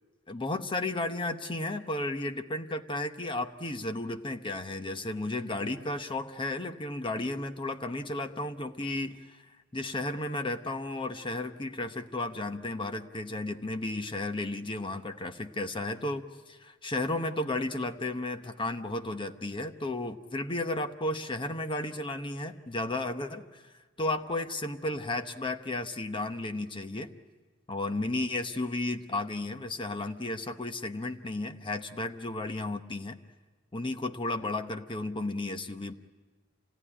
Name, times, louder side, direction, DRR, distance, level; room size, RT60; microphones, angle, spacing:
voice 1, 0.3-9.4 9.7-23.6 24.0-27.1 27.7-33.2 33.7-35.9, left 2 dB, 25° left, 7 dB, 0.9 m, -33 dB
27.0 x 17.5 x 9.9 m, 1.4 s
head